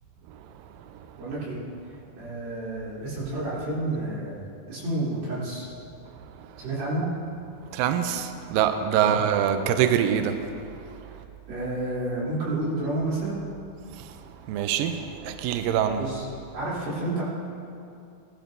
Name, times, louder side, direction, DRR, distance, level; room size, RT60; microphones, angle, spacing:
voice 1, 1.2-1.6 2.2-5.7 6.6-7.0 8.9-9.2 11.5-13.4 15.9-16.2 16.5-17.2, right 2 dB, 65° right, -8 dB, 5.0 m, -30 dB
voice 2, 7.7-10.5 13.9-14.1 14.5-16.0, right 9 dB, 85° right, 8 dB, 2.0 m, -24 dB
18.5 x 12.0 x 2.7 m, 2.6 s
omnidirectional pair, 4.6 m